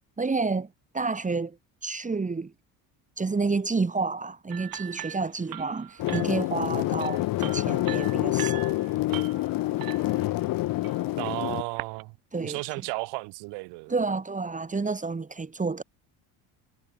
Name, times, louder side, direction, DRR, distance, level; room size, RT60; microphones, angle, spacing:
voice 1, 0.2-1.6 1.8-2.5 3.2-8.7 12.3-12.6 13.9-15.8, right 4 dB, 20° right, 2.5 m, -29 dB
sound 1, 4.5-12.0, right 13 dB, 60° right, 5.9 m, -42 dB
sound 2, 6.0-11.6, left 17 dB, 55° left, 0.8 m, -27 dB
voice 2, 11.2-13.9, right 28 dB, 80° right, 4.7 m, -34 dB
supercardioid pair, 100°, 40 cm